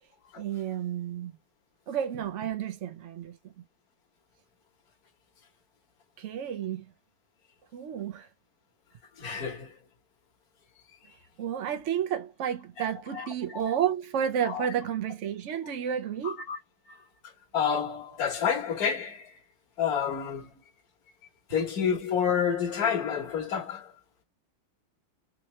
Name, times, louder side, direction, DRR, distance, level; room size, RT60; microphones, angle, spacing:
voice 1, 0.4-1.3 1.9-3.4 6.2-6.9 7.7-8.3 11.4-16.4, right 9 dB, 80° right, 0.6 m, -31 dB
voice 2, 9.2-9.7 12.8-12.9 13.1-13.3 13.6-13.7 14.4-14.7 16.2-16.6 16.9-17.0 17.5-19.3 19.8-20.5 21.5-23.9, left 7 dB, 55° left, 1.5 m, -29 dB
4.1 x 2.9 x 3.1 m
omnidirectional pair, 2.2 m